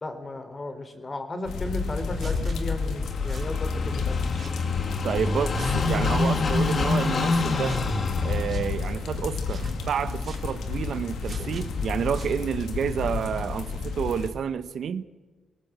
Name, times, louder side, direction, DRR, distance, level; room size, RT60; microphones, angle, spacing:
voice 1, 0.0-4.2, left 1 dB, 30° left, 8 dB, 3.3 m, -34 dB
sound 1, 1.5-14.3, left 4 dB, 85° left, 2.3 m, -31 dB
Car passing by / Idling, 1.9-12.6, left 3 dB, 50° left, 2.0 m, -29 dB
sound 2, 2.1-2.6 3.3-3.5 4.3-4.6 5.5-5.8 6.6-6.9 7.7-7.9 8.5-8.7 9.4-9.8 10.2-10.5 11.2-11.6 12.1-12.4, right 5 dB, 50° right, 2.7 m, -45 dB
voice 2, 5.0-7.8 8.2-15.0, right 7 dB, 70° right, 13 dB, 0.9 m, -29 dB
20.5 x 18.5 x 7.9 m, 1.3 s
cardioid pair, 85°, 0 cm